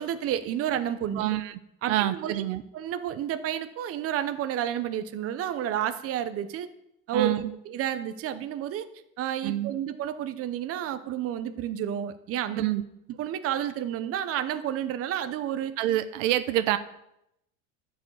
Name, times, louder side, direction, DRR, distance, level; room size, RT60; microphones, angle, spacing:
voice 1, 0.0-1.2 1.8-2.4 2.7-6.7 7.1-7.3 7.7-8.9 9.2-12.6 13.2-15.7, right 10 dB, 40° right, 10 dB, 0.9 m, -30 dB
voice 2, 1.2-1.6 1.9-2.6 7.1-7.5 9.4-9.7 12.5-12.8 15.8-16.8, right 14 dB, 75° right, 12 dB, 0.9 m, -26 dB
12.0 x 5.1 x 8.2 m, 0.82 s
supercardioid pair, 130°, 37 cm